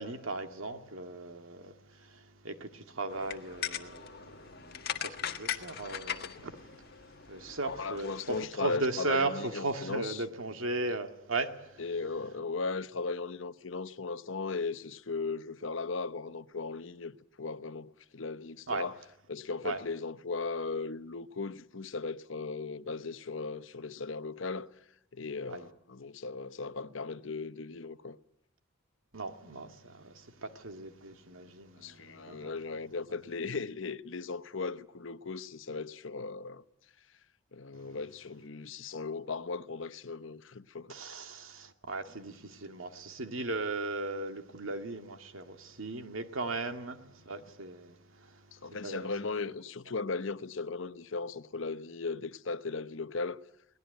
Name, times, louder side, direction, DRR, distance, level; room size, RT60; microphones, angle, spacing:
voice 1, 0.0-11.8 18.7-18.8 19.6-19.8 25.5-25.7 29.1-32.5 37.7-38.0 40.9-49.1, right 2 dB, 80° right, 2.1 m, -37 dB
sound 1, 3.1-8.5, left 8 dB, 50° left, 1.6 m, -40 dB
voice 2, 7.6-10.2 11.8-18.9 19.3-24.7 25.1-28.2 31.8-36.6 37.5-40.9 48.5-53.4, left 4 dB, 70° left, 0.9 m, -37 dB
22.0 x 19.0 x 9.2 m
head